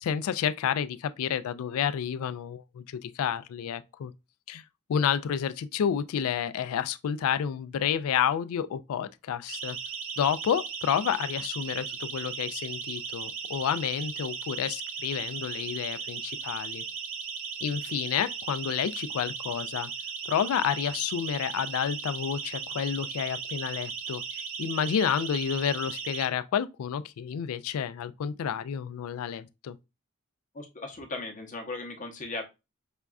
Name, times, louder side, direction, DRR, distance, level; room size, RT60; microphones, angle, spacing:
voice 1, 0.0-4.1 4.5-4.6 4.9-9.8 10.2-16.8 17.6-19.9 20.3-29.8, left 8 dB, 70° left, 0.3 m, -30 dB
Siren, 9.5-26.3, right 6 dB, 60° right, 0.5 m, -37 dB
voice 2, 30.5-32.4, left 3 dB, 35° left, 0.7 m, -37 dB
5.1 x 2.3 x 2.3 m
head